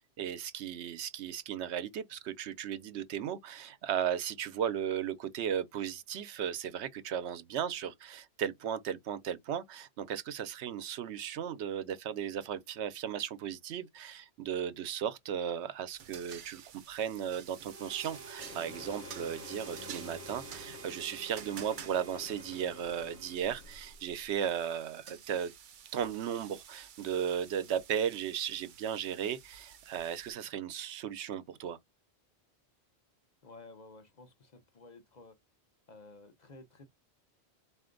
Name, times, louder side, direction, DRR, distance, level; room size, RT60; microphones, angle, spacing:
voice 1, 0.2-25.5 25.9-31.8, right 9 dB, 85° right, 0.9 m, -36 dB
sound 1, 15.9-30.3, right 8 dB, 55° right, 0.6 m, -51 dB
Harmonica, 17.7-24.0, right 3 dB, 15° right, 0.5 m, -51 dB
sound 2, 18.4-24.5, left 7 dB, 90° left, 0.9 m, -51 dB
voice 2, 33.4-35.4 35.9-36.9, left 3 dB, 45° left, 0.7 m, -53 dB
4.2 x 2.5 x 3.7 m
omnidirectional pair, 1.1 m